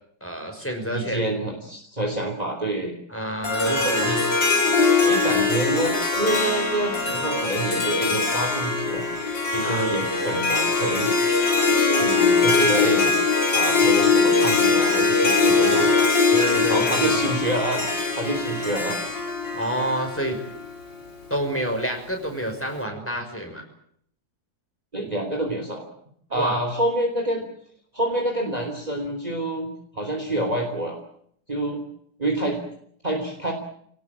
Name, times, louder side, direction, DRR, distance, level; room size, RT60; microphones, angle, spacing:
voice 1, 0.2-1.2 3.1-4.2 9.6-9.9 16.3-17.3 19.5-20.4 21.3-23.6 26.3-26.6, equal, 5° left, 2 dB, 5.9 m, -28 dB
voice 2, 0.9-2.9 3.6-4.2 5.0-9.1 9.5-11.1 12.0-13.1 13.5-15.9 16.7-17.9 18.2-19.0 24.9-25.9 26.3-27.4 27.9-31.0 31.5-31.8 32.2-32.6 33.0-33.5, right 1 dB, 20° right, 2 dB, 3.4 m, -27 dB
Harp, 3.4-20.7, left 4 dB, 70° left, 3.9 m, -21 dB
27.0 x 18.5 x 8.8 m, 0.68 s
omnidirectional pair, 2.1 m